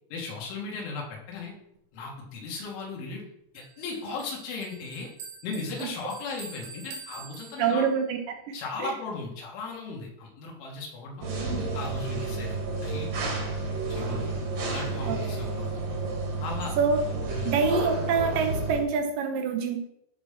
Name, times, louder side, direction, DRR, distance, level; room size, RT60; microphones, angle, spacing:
voice 1, 0.1-1.6 1.9-3.3 3.5-5.1 5.4-7.9 8.5-11.3 11.7-13.3 13.9-14.3 14.7-15.7 16.4-16.8 17.3-17.6, left 4 dB, 80° left, -1 dB, 5.0 m, -37 dB
Bell, 3.6-8.1, right 5 dB, 85° right, 4.5 m, -46 dB
voice 2, 7.6-8.5 15.1-15.2 16.8-17.0 17.5-19.8, right 5 dB, 70° right, 5 dB, 2.2 m, -26 dB
sound 1, 11.2-18.8, right 3 dB, 45° right, 2.2 m, -31 dB
12.5 x 5.5 x 6.0 m, 0.74 s
omnidirectional pair, 5.4 m